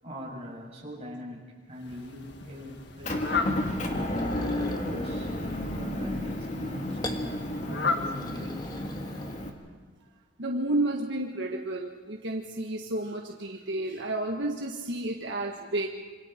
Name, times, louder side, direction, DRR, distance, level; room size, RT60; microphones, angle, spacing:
voice 1, 0.0-3.7 4.3-7.4 7.7-9.1, left 1 dB, 35° right, -3 dB, 6.6 m, -42 dB
Fowl, 1.7-9.1, left 4 dB, 65° left, 1.7 m, -36 dB
Motor vehicle (road) / Engine, 3.0-9.5, left 1 dB, 40° left, 2.3 m, -32 dB
sound 1, 4.1-5.2 7.0-7.3 7.8-9.7, left 2 dB, 20° left, 1.5 m, -41 dB
voice 2, 10.4-15.9, right 1 dB, 70° right, 1 dB, 1.6 m, -31 dB
26.5 x 26.5 x 4.5 m, 1.3 s
head